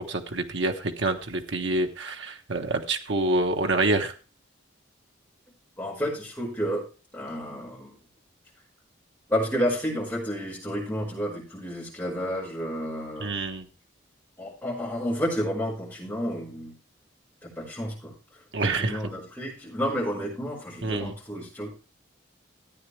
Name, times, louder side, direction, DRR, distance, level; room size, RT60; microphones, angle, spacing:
voice 1, 0.1-4.1 13.2-13.7 18.5-19.0 20.8-21.1, right 2 dB, 65° right, 4 dB, 1.1 m, -27 dB
voice 2, 5.8-6.8 7.1-8.0 9.3-13.3 14.4-16.7 17.4-18.1 18.8-21.7, equal, 10° left, -5 dB, 5.2 m, -30 dB
14.5 x 9.0 x 3.3 m, 0.33 s
head